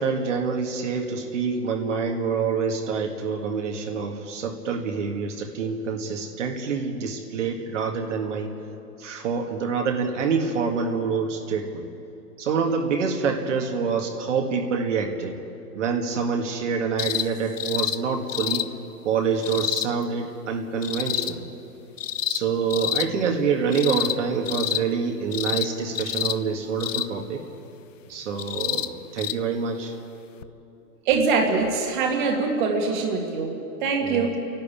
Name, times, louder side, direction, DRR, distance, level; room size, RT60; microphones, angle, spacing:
voice 1, 0.0-8.5 9.0-11.8 12.4-15.4 15.8-18.7 19.0-21.4 22.3-27.4 28.1-29.9 34.0-34.4, right 5 dB, 50° right, 2 dB, 2.0 m, -26 dB
sound 1, 17.0-17.3 17.6-18.0 18.3-18.7 19.4-19.9 20.8-21.3 22.0-22.4 22.7-23.1 23.7-24.2 24.5-24.8 25.3-25.7 26.0-26.4 26.8-27.1 28.4-28.9 29.2-29.3 30.4-30.5, left 10 dB, 55° left, 0.8 m, -27 dB
voice 2, 31.1-33.5 33.8-34.4, right 4 dB, 30° right, 1 dB, 1.9 m, -23 dB
29.5 x 12.0 x 8.6 m, 2.8 s
hypercardioid pair, 165°, 46 cm